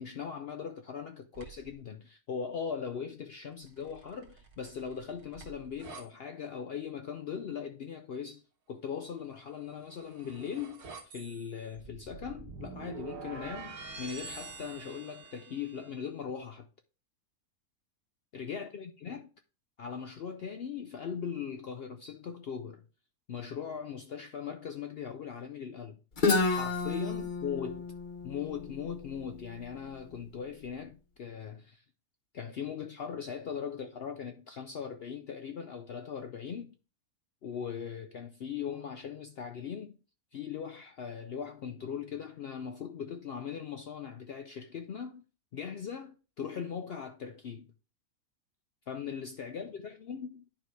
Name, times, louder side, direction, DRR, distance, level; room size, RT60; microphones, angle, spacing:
voice 1, 0.0-8.4 8.7-16.7 18.3-19.3 19.8-22.8 23.3-26.0 26.5-27.9 28.2-31.8 32.3-36.7 37.4-40.0 40.3-45.2 45.5-47.7 48.9-50.5, left 7 dB, 65° left, 0.6 m, -39 dB
tts examples, 1.3-1.8 3.7-6.1 9.6-15.9, right 4 dB, 75° right, 1.8 m, -47 dB
Guitar, 26.2-29.9, left 3 dB, 35° left, 1.0 m, -31 dB
10.5 x 4.6 x 3.3 m
omnidirectional pair, 1.6 m